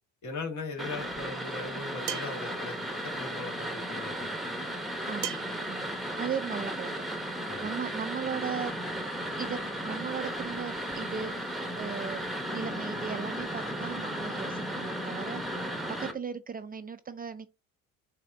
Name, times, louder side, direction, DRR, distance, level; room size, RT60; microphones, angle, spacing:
voice 1, 0.2-4.3 7.5-7.7, left 3 dB, 55° left, 1.7 m, -39 dB
sound 1, 0.8-16.1, right 1 dB, ahead, 0.9 m, -35 dB
sound 2, 2.1-2.4 5.2-5.6, right 10 dB, 75° right, 0.9 m, -36 dB
voice 2, 5.1-7.2 7.6-8.7 9.4-12.2 12.5-15.4 15.9-17.5, right 6 dB, 25° right, 0.4 m, -37 dB
6.7 x 2.7 x 2.6 m
cardioid pair, 95°, 34 cm